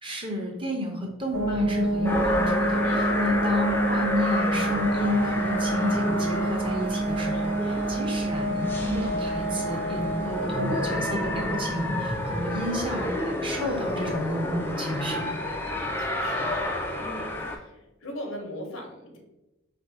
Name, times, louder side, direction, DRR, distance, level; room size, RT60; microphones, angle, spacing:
voice 1, 0.0-15.3, equal, 25° right, 0 dB, 0.7 m, -32 dB
sound 1, 1.3-15.9, right 1 dB, 80° right, 1.0 m, -29 dB
sound 2, 2.0-17.6, left 1 dB, 10° left, 0.3 m, -30 dB
voice 2, 2.8-3.2 7.7-8.1 15.1-19.2, left 1 dB, 80° left, 2 dB, 0.9 m, -41 dB
3.5 x 2.6 x 4.6 m, 0.98 s
head